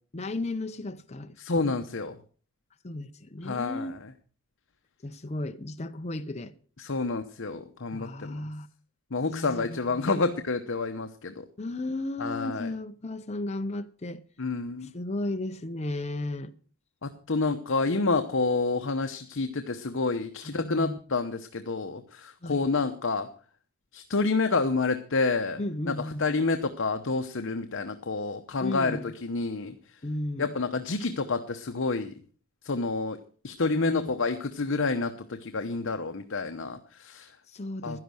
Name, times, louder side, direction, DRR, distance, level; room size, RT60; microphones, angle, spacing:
voice 1, 0.1-1.8 2.8-4.0 5.0-6.5 7.9-8.7 9.3-10.3 11.6-14.2 14.8-16.5 20.4-21.0 22.4-22.6 25.6-26.2 28.6-29.1 30.0-30.6 33.7-34.1 37.5-38.0, left 1 dB, 30° left, 0.7 m, -35 dB
voice 2, 1.4-2.1 3.4-4.0 6.8-8.4 9.1-11.4 12.2-12.7 14.4-14.9 17.0-23.3 23.9-25.6 25.9-29.7 30.4-32.1 32.6-33.2 33.4-37.3 37.8-38.0, left 3 dB, 60° left, 0.9 m, -29 dB
12.0 x 11.0 x 6.3 m
head